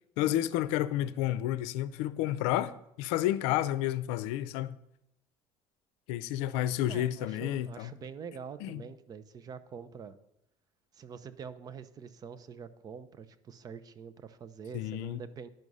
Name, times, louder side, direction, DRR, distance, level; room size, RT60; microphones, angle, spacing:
voice 1, 0.2-4.8 6.1-7.9 8.6-8.8 14.7-15.2, left 13 dB, 90° left, 0.5 m, -31 dB
voice 2, 6.9-10.1 10.9-15.5, right 6 dB, 35° right, 0.7 m, -45 dB
10.5 x 6.3 x 5.4 m
cardioid pair, 120°, 11 cm